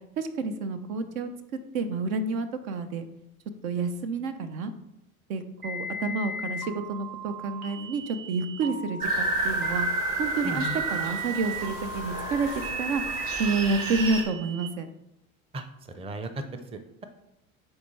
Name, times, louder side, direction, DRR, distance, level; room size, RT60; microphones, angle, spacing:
voice 1, 0.2-1.3 1.7-3.1 3.6-4.7 5.3-9.9 10.2-10.7 10.9-12.5 12.8-13.0 13.4-14.9, right 3 dB, 70° right, 9 dB, 0.8 m, -29 dB
sound 1, 5.6-14.6, right 3 dB, 90° right, 1.4 m, -37 dB
sound 2, 9.0-14.2, right 2 dB, 50° right, 1.6 m, -31 dB
voice 2, 15.9-17.0, right 1 dB, 15° right, 8 dB, 0.6 m, -36 dB
9.5 x 3.5 x 3.3 m, 0.85 s
hypercardioid pair, 90°, 43 cm